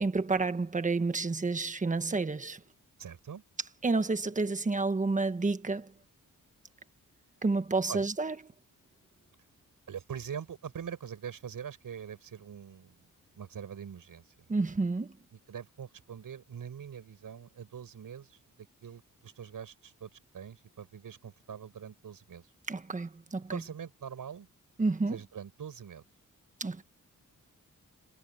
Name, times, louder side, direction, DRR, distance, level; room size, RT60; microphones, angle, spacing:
voice 1, 0.0-2.6 3.8-5.9 7.4-8.3 14.5-15.1 22.7-23.6 24.8-25.2 26.6-26.8, right 3 dB, 25° right, 1.4 m, -30 dB
voice 2, 3.0-3.4 7.9-8.1 9.9-13.1 13.3-14.4 14.8-14.9 15.3-22.5 23.5-24.5 25.1-26.0, right 8 dB, 80° right, 6.7 m, -43 dB
wide cardioid pair, 140°, 33 cm